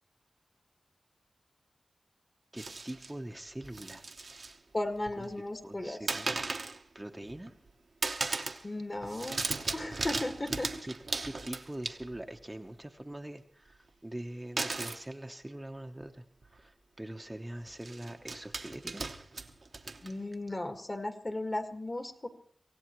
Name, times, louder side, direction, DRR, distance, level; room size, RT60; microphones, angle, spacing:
voice 1, 2.5-4.1 5.2-5.3 5.6-6.4 6.9-7.5 10.8-10.9 11.2-19.0, right 1 dB, 20° right, 4 dB, 0.9 m, -43 dB
sound 1, 2.6-3.1 3.6-4.6 4.8-5.4 6.1-6.8 7.2-7.7 8.0-8.7 8.9-12.3 14.6-15.0 16.0-16.1 16.4-16.6 17.7-20.3, right 3 dB, 60° right, 1.0 m, -37 dB
voice 2, 4.7-6.0 8.6-9.4 9.7-10.7 20.0-22.3, left 1 dB, 35° left, 6 dB, 1.8 m, -35 dB
24.5 x 16.5 x 3.1 m, 0.62 s
cardioid pair, 60°, 0 cm